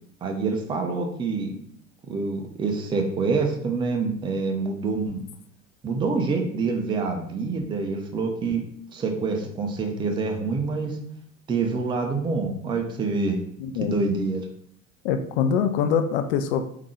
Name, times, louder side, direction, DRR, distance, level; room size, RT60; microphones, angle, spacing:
voice 1, 0.2-1.5 2.1-5.2 5.8-8.6 8.9-11.0 11.5-13.4 13.8-14.4, right 4 dB, 10° right, 3 dB, 0.5 m, -26 dB
voice 2, 13.6-14.0 15.0-16.7, left 7 dB, 55° left, 7 dB, 0.6 m, -24 dB
3.7 x 3.6 x 3.1 m, 0.67 s
figure-of-eight pair, 80°, 41 cm